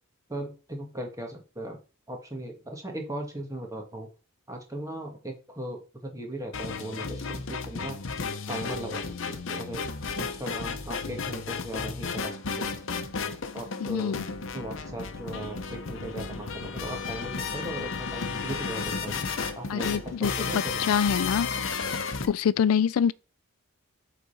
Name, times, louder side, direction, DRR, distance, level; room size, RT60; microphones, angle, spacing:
voice 1, 0.3-1.8 2.1-4.1 4.5-8.0 8.5-9.9 10.2-12.7 13.5-14.2 14.5-19.3 19.5-20.8 22.2-22.3, right 1 dB, 15° right, 1.7 m, -38 dB
sound 1, 6.5-22.3, left 5 dB, 65° left, 0.8 m, -33 dB
voice 2, 13.8-14.2 19.7-20.5 20.8-21.5 22.3-23.1, left 7 dB, 85° left, 0.3 m, -25 dB
8.2 x 4.0 x 4.2 m
head